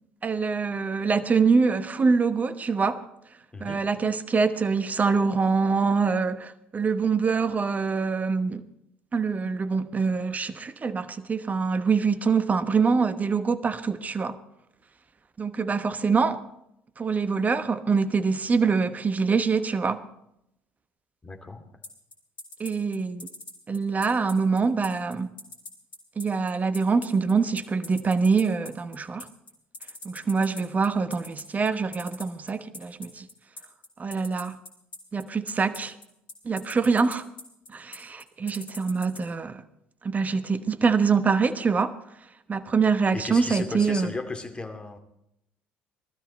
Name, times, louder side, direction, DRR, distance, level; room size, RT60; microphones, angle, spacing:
voice 1, 0.2-3.0 3.6-8.7 9.1-14.4 15.4-16.4 17.0-20.0 22.6-23.3 23.7-25.3 26.2-29.3 30.0-33.3 34.0-34.6 35.1-36.0 36.4-37.3 37.7-39.6 40.0-41.9 42.5-44.1, right 5 dB, 30° right, 1.1 m, -24 dB
voice 2, 21.2-21.7 43.1-45.0, left 3 dB, 20° left, 2.5 m, -35 dB
sound 1, 21.8-39.2, left 2 dB, 90° left, 2.4 m, -41 dB
19.0 x 13.0 x 4.3 m
hypercardioid pair, 60°, 5 cm